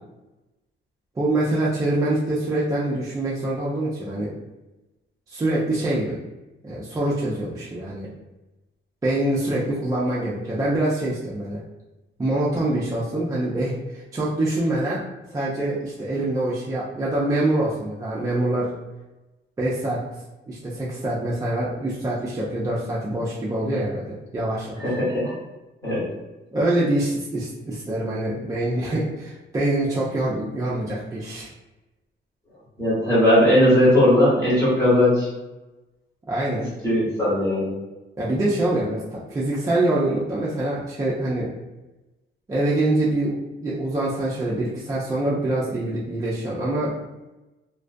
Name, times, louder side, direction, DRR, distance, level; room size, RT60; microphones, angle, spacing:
voice 1, 1.2-4.4 5.3-6.2 6.6-8.1 9.0-11.6 12.2-15.0 15.3-18.7 19.6-20.0 20.5-24.8 26.5-31.5 36.3-36.6 38.2-41.5 42.5-46.9, right 1 dB, 15° right, -7 dB, 0.3 m, -25 dB
voice 2, 24.8-25.3 25.8-26.0 32.8-35.3 36.8-37.7, left 1 dB, 15° left, -8 dB, 1.1 m, -18 dB
2.3 x 2.2 x 2.4 m, 1.1 s
wide cardioid pair, 165°, 21 cm